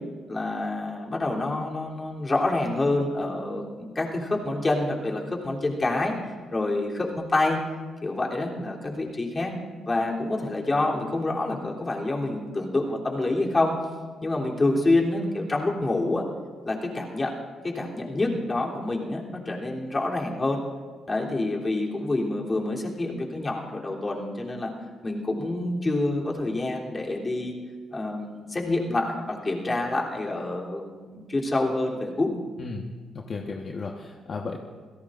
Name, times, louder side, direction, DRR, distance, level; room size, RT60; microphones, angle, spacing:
voice 1, 0.3-6.2 6.5-7.6 8.0-9.5 9.9-13.7 14.2-16.2 16.6-17.3 17.6-20.6 21.1-24.7 25.0-27.5 27.9-32.3, left 2 dB, 25° left, -2 dB, 3.4 m, -27 dB
voice 2, 33.1-34.6, left 4 dB, 45° left, 0 dB, 1.4 m, -34 dB
27.5 x 17.0 x 2.6 m, 1.5 s
cardioid pair, 90°, 0 cm